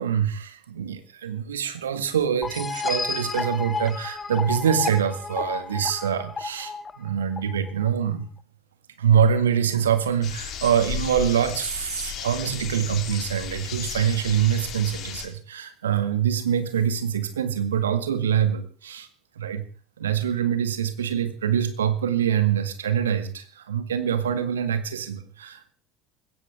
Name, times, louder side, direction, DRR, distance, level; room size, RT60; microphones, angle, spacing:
voice 1, 0.0-8.3 9.0-19.1 19.4-19.7 20.0-25.7, right 8 dB, 75° right, 9 dB, 2.0 m, -25 dB
sound 1, 2.4-7.9, left 4 dB, 20° left, 1.5 m, -31 dB
sound 2, 10.2-15.3, left 9 dB, 45° left, 3.4 m, -35 dB
20.5 x 17.0 x 3.6 m, 0.40 s
figure-of-eight pair, 65°, 0 cm